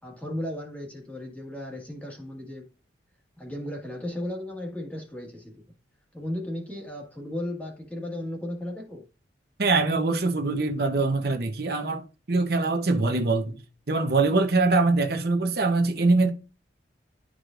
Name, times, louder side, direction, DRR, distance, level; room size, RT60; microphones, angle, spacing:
voice 1, 0.0-2.7 3.4-5.6 6.1-9.0, left 1 dB, 10° left, 1.7 m, -35 dB
voice 2, 9.6-13.6 13.9-16.3, right 3 dB, 55° right, 0.9 m, -23 dB
11.5 x 4.8 x 2.5 m
head